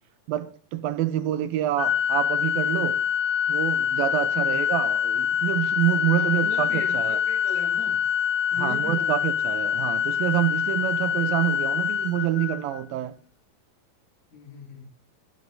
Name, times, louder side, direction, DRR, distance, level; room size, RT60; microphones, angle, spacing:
voice 1, 0.3-3.0 3.5-7.2 8.6-13.2, right 13 dB, 85° right, 2.8 m, -27 dB
Organ, 1.8-12.8, left 8 dB, 60° left, 1.7 m, -25 dB
voice 2, 6.2-8.0 8.5-9.2 11.0-11.3 14.3-14.9, left 1 dB, 90° left, 5.2 m, -39 dB
20.0 x 12.5 x 4.1 m
omnidirectional pair, 4.0 m